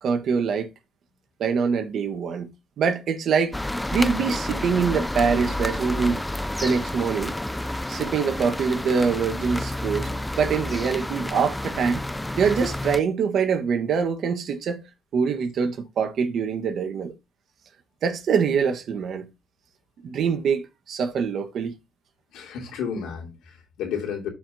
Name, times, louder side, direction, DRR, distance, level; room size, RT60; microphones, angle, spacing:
voice 1, 0.0-0.7 1.4-2.5 2.8-3.6 3.9-6.2 6.6-7.3 7.9-10.1 10.4-12.0 12.4-14.8 15.1-17.1 18.0-19.3 20.0-21.7, right 6 dB, 65° right, 1.4 m, -24 dB
sound 1, 3.5-13.0, left 1 dB, 5° left, 0.3 m, -30 dB
voice 2, 22.3-24.3, left 7 dB, 90° left, 2.9 m, -32 dB
13.0 x 4.9 x 2.7 m
cardioid pair, 90°, 0 cm